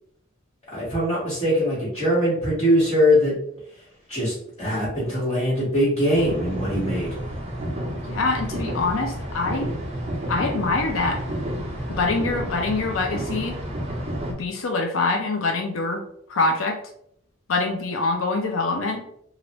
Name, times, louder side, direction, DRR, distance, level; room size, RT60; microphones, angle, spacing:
voice 1, 0.7-3.3 4.1-4.3 4.6-7.1, equal, 30° left, -11 dB, 1.3 m, -21 dB
sound 1, 6.1-14.3, right 1 dB, 30° right, 0.8 m, -30 dB
voice 2, 8.1-9.7 10.3-11.2 11.9-13.6 14.3-16.0 16.3-16.8 17.5-19.0, left 3 dB, 80° left, 3 dB, 0.5 m, -24 dB
3.1 x 2.5 x 2.9 m, 0.70 s
head